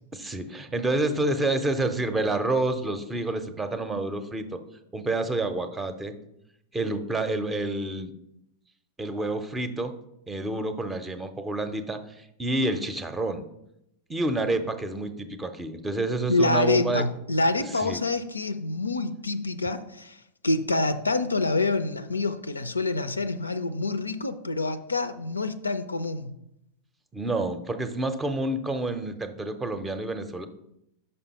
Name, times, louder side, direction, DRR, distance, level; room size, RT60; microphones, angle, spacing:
voice 1, 0.1-4.6 4.9-6.2 6.7-8.1 9.0-9.9 10.3-13.4 14.1-17.0 17.8-18.0 27.1-30.5, right 2 dB, 15° right, 9 dB, 0.6 m, -28 dB
voice 2, 16.3-20.2 20.4-26.3, left 2 dB, 80° left, 11 dB, 0.4 m, -26 dB
5.5 x 5.4 x 4.1 m, 0.80 s
figure-of-eight pair, 90°, 0 cm